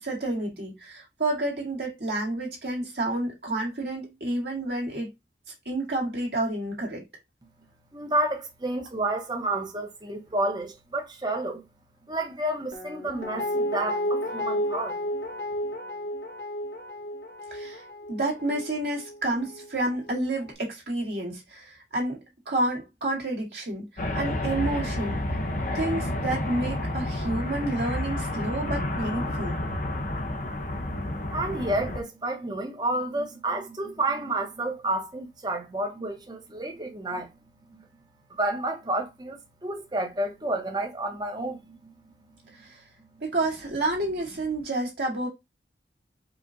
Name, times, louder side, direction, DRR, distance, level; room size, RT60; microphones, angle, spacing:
voice 1, 0.0-5.1 5.7-7.0 17.5-25.2 25.7-29.6 42.6-42.8 43.2-45.3, right 2 dB, 65° right, 2.1 m, -30 dB
voice 2, 7.9-11.6 12.1-15.0 31.3-37.4 37.7-37.9 38.3-41.9, right 1 dB, 25° right, 1.0 m, -30 dB
Guitar, 12.7-19.7 20.1-20.2, equal, 65° left, 1.6 m, -32 dB
sound 1, 24.0-32.0, left 1 dB, 45° left, 0.7 m, -30 dB
4.9 x 2.4 x 3.9 m
head